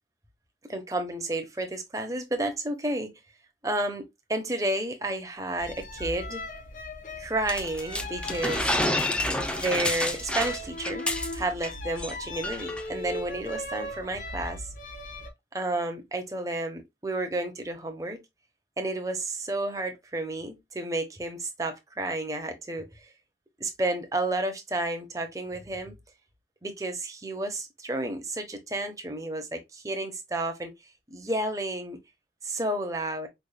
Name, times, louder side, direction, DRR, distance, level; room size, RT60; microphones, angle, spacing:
voice 1, 0.7-3.1 3.6-4.0 4.3-6.4 7.2-8.6 9.5-11.0 11.3-14.6 15.5-18.2 18.8-22.9 23.6-25.9 26.6-30.7 31.1-32.0 32.4-33.3, right 1 dB, 20° right, 0.9 m, -31 dB
sound 1, 5.6-15.3, left 1 dB, 45° left, 1.0 m, -38 dB
sound 2, 7.5-11.7 12.0-12.1 12.4-12.8, left 1 dB, 5° left, 0.4 m, -29 dB
5.2 x 3.4 x 2.2 m
head